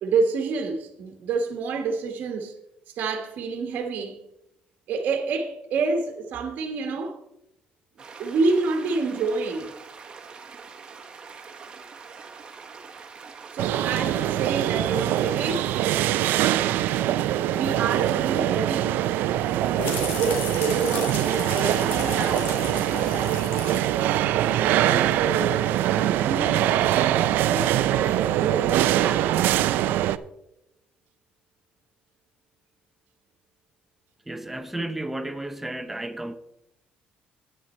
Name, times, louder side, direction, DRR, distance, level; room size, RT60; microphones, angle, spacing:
voice 1, 0.0-2.5 2.9-4.2 4.9-7.2 8.2-9.7 13.5-15.9 17.5-19.0 20.1-22.5 24.1-25.6 25.9-29.3, right 4 dB, 60° right, 1.3 m, -28 dB
sound 1, 8.0-17.1, right 5 dB, 30° right, 1.3 m, -44 dB
sound 2, 13.6-30.2, right 12 dB, 80° right, 0.4 m, -23 dB
sound 3, 19.3-24.9, left 3 dB, 85° left, 2.7 m, -34 dB
voice 2, 34.3-36.3, right 1 dB, 5° right, 0.7 m, -32 dB
10.0 x 9.2 x 4.3 m
cardioid pair, 155°, 3 cm